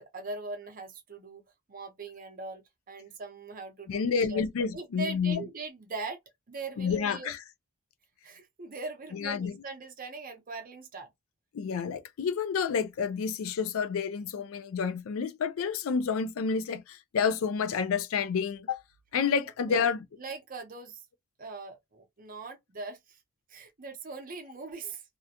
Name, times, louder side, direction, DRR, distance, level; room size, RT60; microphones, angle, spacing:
voice 1, 0.0-1.4 1.7-2.6 2.9-4.4 4.7-6.2 6.5-7.3 8.2-11.1 19.7-19.8 20.2-21.0 21.4-23.2 23.5-25.0, right 3 dB, 45° right, 0.7 m, -41 dB
voice 2, 3.9-5.4 6.8-7.4 9.1-9.5 11.5-18.8 19.1-20.0, left 6 dB, 85° left, 0.4 m, -29 dB
2.4 x 2.1 x 2.8 m
head